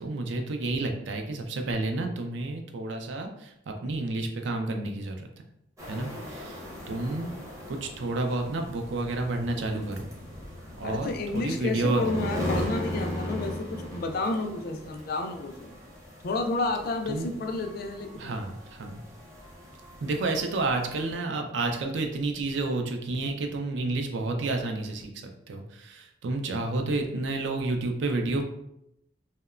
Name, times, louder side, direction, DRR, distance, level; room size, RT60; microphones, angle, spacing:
voice 1, 0.0-5.3 5.9-6.6 6.9-7.3 7.7-10.1 10.8-11.1 11.3-12.0 17.1-17.3 18.2-19.0 20.0-25.1 25.5-28.4, right 2 dB, 75° right, 4 dB, 0.4 m, -30 dB
sound 1, 5.8-21.2, left 1 dB, 15° right, 0.6 m, -38 dB
voice 2, 10.8-15.7 16.2-18.3, left 3 dB, 55° left, 4 dB, 0.3 m, -31 dB
2.8 x 2.1 x 2.4 m, 0.78 s
head